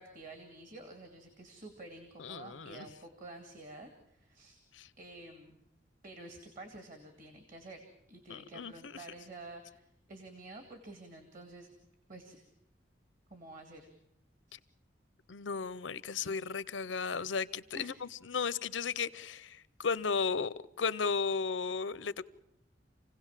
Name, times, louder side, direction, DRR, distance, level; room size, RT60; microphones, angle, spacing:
voice 1, 0.0-4.6 5.0-5.6 6.0-11.7 12.1-12.5 13.3-13.9 14.5-14.6 17.7-17.9, right 2 dB, 45° right, 2.3 m, -50 dB
voice 2, 2.2-2.9 4.7-4.9 8.3-9.0 14.5-14.6 15.3-22.2, left 5 dB, 90° left, 0.7 m, -35 dB
27.5 x 17.0 x 7.4 m
head